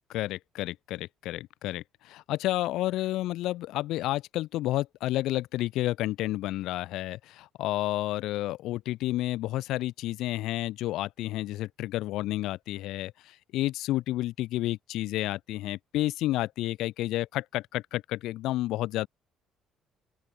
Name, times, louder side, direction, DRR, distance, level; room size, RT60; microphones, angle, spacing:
voice 1, 0.1-19.1, left 16 dB, 75° left, 0.5 m, -31 dB
open air
cardioid pair, 160°, 0 cm